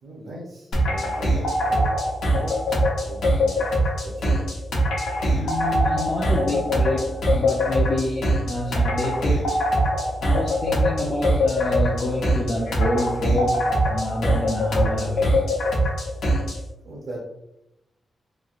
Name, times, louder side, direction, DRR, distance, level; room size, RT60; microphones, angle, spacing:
voice 1, 0.0-1.9 2.3-3.6 4.0-4.4 16.8-17.3, right 1 dB, 65° right, -3 dB, 0.6 m, -38 dB
sound 1, 0.7-16.6, equal, 80° left, 0.8 m, -22 dB
voice 2, 5.3-9.6 10.2-15.4, left 1 dB, 40° left, -4 dB, 0.5 m, -27 dB
3.1 x 2.7 x 2.4 m, 0.87 s
wide cardioid pair, 125°, 0 cm